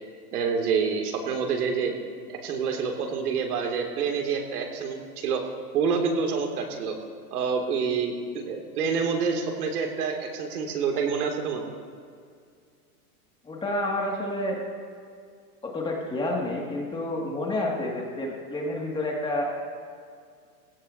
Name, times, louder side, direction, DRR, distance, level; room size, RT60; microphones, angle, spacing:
voice 1, 0.3-1.9 2.3-5.4 5.7-7.0 7.3-11.7, right 5 dB, 75° right, 2 dB, 2.5 m, -27 dB
voice 2, 13.4-14.6 15.6-19.5, left 1 dB, 10° left, -2 dB, 2.0 m, -29 dB
20.5 x 16.5 x 2.7 m, 2.2 s
supercardioid pair, 150°, 45 cm